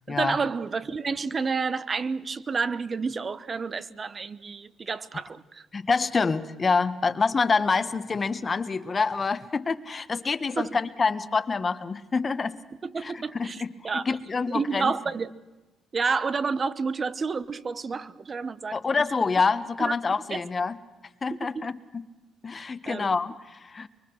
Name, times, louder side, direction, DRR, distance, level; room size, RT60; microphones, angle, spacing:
voice 1, 0.1-5.7 10.6-10.8 12.8-14.1 14.5-15.3 15.9-19.0 19.8-19.9 20.3-20.4 21.5-21.6 22.9-23.1, right 4 dB, 40° right, 1.1 m, -30 dB
voice 2, 5.7-12.6 13.0-14.9 18.7-20.8 21.2-22.0 22.4-23.9, left 4 dB, 35° left, 1.4 m, -27 dB
25.0 x 23.5 x 6.3 m
supercardioid pair, 70°, 0 cm